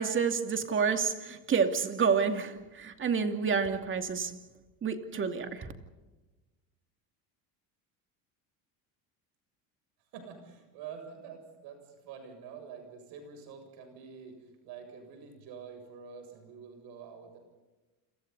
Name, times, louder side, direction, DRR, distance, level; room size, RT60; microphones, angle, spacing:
voice 1, 0.0-4.3 4.8-5.7, right 6 dB, 30° right, 2.6 m, -29 dB
voice 2, 10.1-17.4, right 6 dB, 70° right, 7.5 m, -47 dB
29.5 x 27.5 x 4.1 m
cardioid pair, 125°, 39 cm